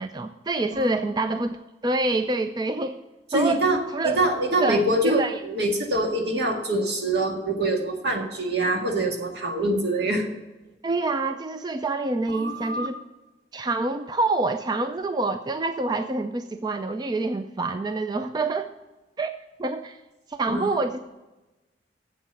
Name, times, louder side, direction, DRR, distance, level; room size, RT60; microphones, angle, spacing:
voice 1, 0.0-1.6 1.8-2.9 3.3-3.6 3.9-4.2 4.6-5.4 10.8-12.9 13.5-18.7 19.2-19.3 19.6-20.0 20.3-21.0, right 2 dB, 25° right, 8 dB, 0.4 m, -26 dB
voice 2, 3.3-10.3 12.3-12.9 20.5-20.8, right 1 dB, 70° right, 2 dB, 1.8 m, -25 dB
8.7 x 7.6 x 6.9 m, 1.1 s
head